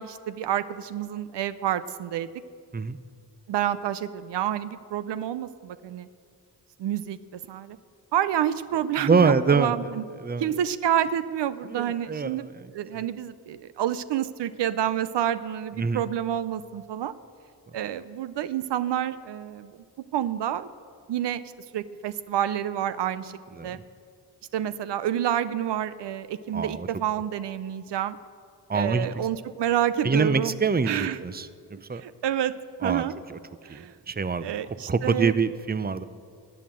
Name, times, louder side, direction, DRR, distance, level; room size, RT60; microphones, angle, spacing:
voice 1, 0.0-2.3 3.5-6.1 6.8-7.8 8.1-10.0 10.4-12.5 12.7-17.1 17.7-19.8 20.1-20.7 21.1-21.4 21.7-23.3 23.6-23.8 24.5-28.2 28.7-30.5 30.9-31.2 31.9-32.6 32.8-33.1 33.6-33.9 34.4-35.4, right 10 dB, 80° right, 15 dB, 0.6 m, -28 dB
voice 2, 9.0-9.8 10.2-10.5 11.6-13.0 15.7-16.0 23.5-23.8 26.5-26.9 28.7-29.1 30.0-31.5 31.9-32.0 32.8-33.0 33.3-33.4 33.7-36.0, right 5 dB, 20° right, 15 dB, 0.7 m, -25 dB
14.0 x 8.8 x 7.7 m, 2.1 s
supercardioid pair, 45°, 42 cm